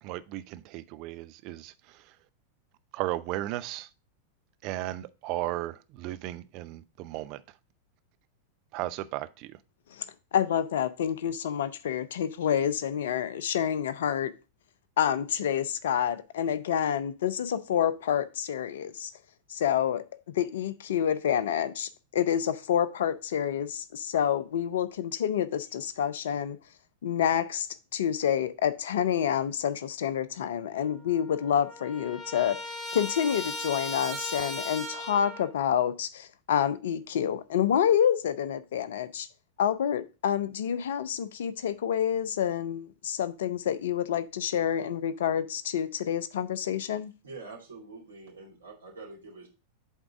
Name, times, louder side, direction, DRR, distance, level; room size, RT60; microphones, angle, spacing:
voice 1, 0.0-2.2 2.9-3.9 4.6-7.4 8.7-9.6, right 16 dB, 40° right, 0.5 m, -35 dB
voice 2, 10.3-14.3 15.0-19.1 19.5-20.0 20.3-26.6 27.0-32.6 32.9-39.3 39.6-47.1, left 9 dB, 60° left, 0.6 m, -28 dB
Trumpet, 30.8-30.9 31.1-35.5, left 1 dB, 10° left, 1.5 m, -37 dB
voice 3, 47.2-49.5, right 3 dB, 70° right, 2.3 m, -45 dB
8.1 x 3.7 x 4.8 m
figure-of-eight pair, 90°, 0 cm